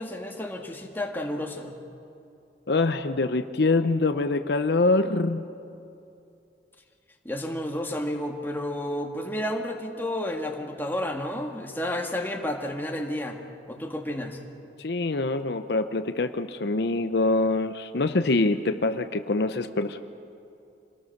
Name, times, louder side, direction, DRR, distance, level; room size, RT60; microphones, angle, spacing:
voice 1, 0.0-1.8 7.3-13.4 13.7-14.4, left 1 dB, 10° left, 2 dB, 1.7 m, -31 dB
voice 2, 2.7-5.4 14.8-20.0, left 2 dB, 65° left, 9 dB, 0.7 m, -24 dB
26.0 x 19.0 x 6.5 m, 2.7 s
head